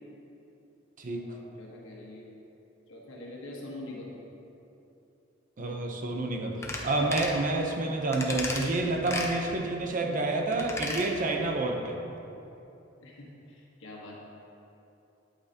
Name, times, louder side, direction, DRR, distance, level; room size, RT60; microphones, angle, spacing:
voice 1, 1.1-2.3 2.9-4.1 13.0-14.2, left 2 dB, 80° left, -3 dB, 1.4 m, -44 dB
voice 2, 5.6-12.0, right 2 dB, 45° right, 2 dB, 0.7 m, -29 dB
sound 1, 6.6-6.8 7.1-7.4 8.1-8.7 9.1-9.3 10.5-11.1 11.4-11.5, left 2 dB, 15° left, 0.8 m, -34 dB
8.7 x 8.5 x 2.9 m, 2.9 s
head